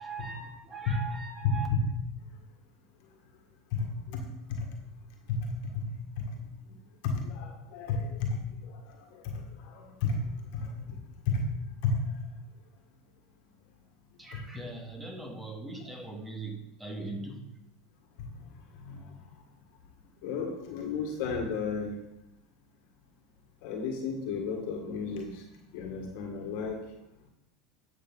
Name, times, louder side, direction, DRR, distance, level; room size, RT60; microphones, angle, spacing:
voice 1, 0.0-1.7 14.2-17.6, right 3 dB, 15° right, 2 dB, 2.3 m, -40 dB
voice 2, 1.4-1.8 3.7-3.9 4.1-4.2 4.5-4.7 5.3-5.8 6.2-6.3 7.0-8.3 9.7-10.2 10.6-10.7 11.3-11.4 11.8-12.0 18.9-19.0 20.2-21.9 23.6-25.3 25.7-26.8, left 5 dB, 60° left, 2 dB, 1.8 m, -32 dB
11.0 x 6.5 x 4.1 m, 0.87 s
hypercardioid pair, 85°, 0 cm